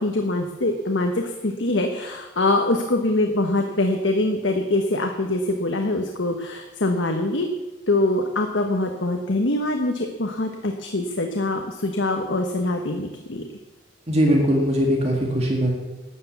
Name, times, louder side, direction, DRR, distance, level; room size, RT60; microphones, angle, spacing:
voice 1, 0.0-7.5 7.9-13.4, left 2 dB, 70° left, 4 dB, 1.2 m, -24 dB
voice 2, 14.1-15.7, equal, 35° right, 1 dB, 1.9 m, -20 dB
13.0 x 9.5 x 8.0 m, 1.1 s
head